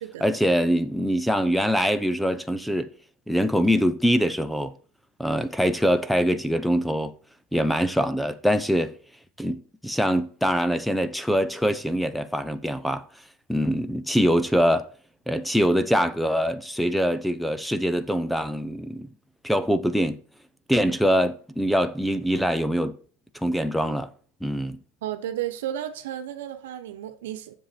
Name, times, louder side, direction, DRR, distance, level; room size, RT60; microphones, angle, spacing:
voice 1, 0.2-2.9 3.3-4.7 5.2-7.1 7.5-9.0 9.4-13.0 13.5-14.9 15.3-19.1 19.4-20.2 20.7-23.0 23.3-24.1 24.4-24.8, equal, ahead, 0.7 m, -23 dB
voice 2, 25.0-27.5, right 11 dB, 80° right, 1.1 m, -33 dB
7.5 x 7.2 x 4.4 m
hypercardioid pair, 105°, 0 cm